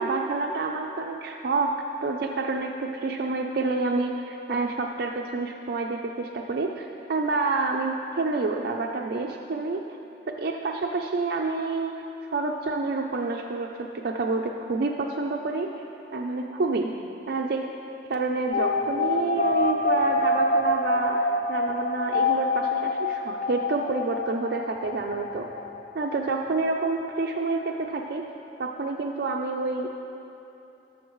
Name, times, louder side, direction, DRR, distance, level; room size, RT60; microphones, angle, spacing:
voice 1, 0.0-9.9 10.3-15.7 16.1-16.9 17.3-17.6 18.0-25.5 25.9-28.3 28.6-29.9, right 3 dB, 60° right, 1 dB, 0.5 m, -28 dB
sound 1, 18.5-27.0 27.3-27.4 27.6-27.7, left 2 dB, 50° left, 0.5 m, -26 dB
19.0 x 7.1 x 3.1 m, 2.9 s
head